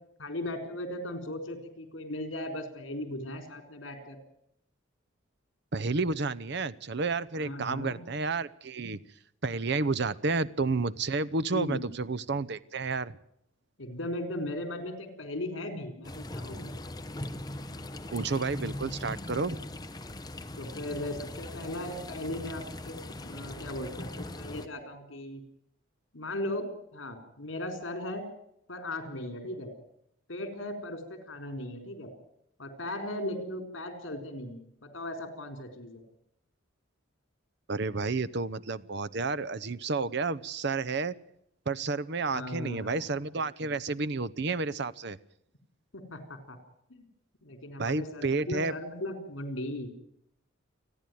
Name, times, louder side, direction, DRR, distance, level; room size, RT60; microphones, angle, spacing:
voice 1, 0.2-4.2 7.4-8.0 11.5-11.9 13.8-16.8 20.6-25.4 26.1-28.3 28.7-29.7 30.3-32.1 32.6-36.0 42.3-43.1 45.9-46.6 46.9-47.0 47.4-49.9, left 1 dB, 65° left, 7 dB, 4.1 m, -37 dB
voice 2, 5.7-9.0 9.4-13.2 18.1-19.6 37.7-41.1 41.7-45.2 47.8-48.7, right 3 dB, 55° right, 15 dB, 0.8 m, -31 dB
sound 1, 16.0-24.7, left 1 dB, 20° left, 0.8 m, -40 dB
29.5 x 10.0 x 9.3 m, 0.75 s
head